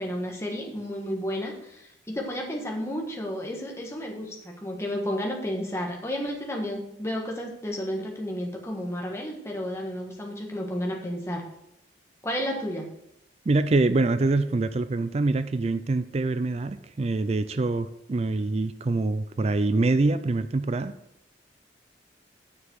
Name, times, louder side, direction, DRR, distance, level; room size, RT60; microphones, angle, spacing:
voice 1, 0.0-11.5 12.2-12.9, equal, 15° left, 0 dB, 1.5 m, -32 dB
voice 2, 13.5-20.9, right 3 dB, 35° right, 12 dB, 0.4 m, -25 dB
7.1 x 6.7 x 6.4 m, 0.80 s
head